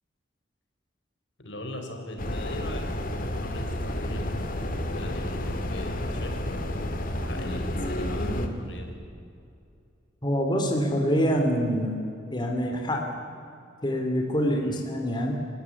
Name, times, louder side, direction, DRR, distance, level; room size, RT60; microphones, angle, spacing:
voice 1, 1.4-9.0 14.6-14.9, left 1 dB, 70° left, 4 dB, 4.1 m, -40 dB
sound 1, 2.2-8.5, left 1 dB, 50° left, 2.2 m, -30 dB
voice 2, 10.2-11.9 12.3-13.1 13.8-15.3, equal, 25° left, 2 dB, 2.8 m, -25 dB
27.0 x 15.5 x 9.6 m, 2.5 s
head